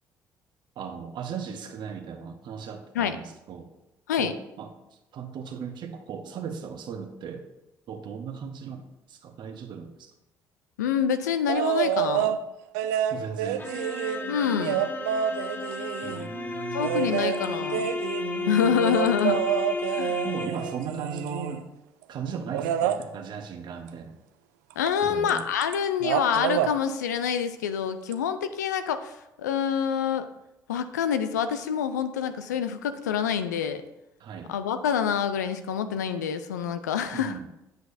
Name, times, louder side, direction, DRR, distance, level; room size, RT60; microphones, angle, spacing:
voice 1, 0.8-3.7 4.1-4.7 5.1-7.5 7.9-10.1 13.1-13.7 16.0-17.1 20.2-21.6 22.1-24.2 25.0-25.4 34.2-34.5 37.1-37.5, right 6 dB, 55° right, 6 dB, 1.0 m, -37 dB
voice 2, 10.8-12.4 14.3-14.9 16.7-17.9 18.5-19.4 19.9-20.2 24.8-30.3 30.7-33.8 34.5-37.4, left 8 dB, 90° left, 10 dB, 0.4 m, -27 dB
sound 1, 11.5-12.4 12.7-16.3 16.8-21.7 22.5-23.0 24.9-25.0 25.3-25.7 26.0-26.7 28.1-28.2, right 10 dB, 80° right, 0.4 m, -28 dB
sound 2, 13.6-20.9, left 4 dB, 20° left, 0.9 m, -33 dB
8.0 x 7.9 x 2.6 m, 0.94 s
hypercardioid pair, 55°, 9 cm